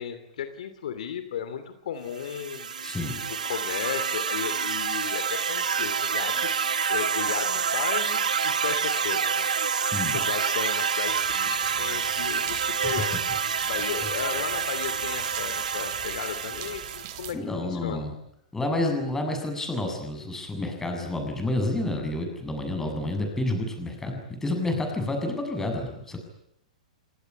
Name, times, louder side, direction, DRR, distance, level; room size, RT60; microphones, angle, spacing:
voice 1, 0.0-2.7 3.3-6.5 6.9-9.4 10.1-13.2 13.6-18.1, left 8 dB, 70° left, 10 dB, 3.0 m, -35 dB
sound 1, 2.2-17.2, right 6 dB, 85° right, 1.4 m, -28 dB
voice 2, 2.8-3.2 9.9-10.2 12.8-12.9 17.3-18.1 18.5-26.2, left 2 dB, 10° left, 4 dB, 7.7 m, -29 dB
sound 2, 11.0-17.3, right 13 dB, 45° right, 3.1 m, -42 dB
28.5 x 18.5 x 9.9 m, 0.76 s
hypercardioid pair, 120°, 4 cm